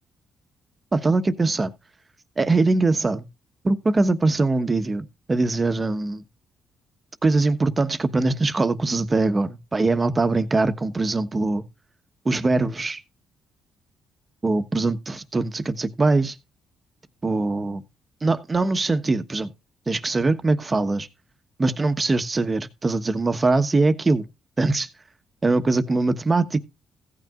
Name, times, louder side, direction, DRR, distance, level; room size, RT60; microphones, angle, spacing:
voice 1, 0.9-1.7 2.4-3.3 3.6-6.2 7.2-11.6 12.2-13.0 14.4-16.4 17.2-17.8 18.2-19.5 19.9-21.1 21.6-24.3 24.6-24.9 25.4-26.6, right 3 dB, 25° right, 1.2 m, -22 dB
16.0 x 9.2 x 2.4 m
cardioid pair, 90°, 0 cm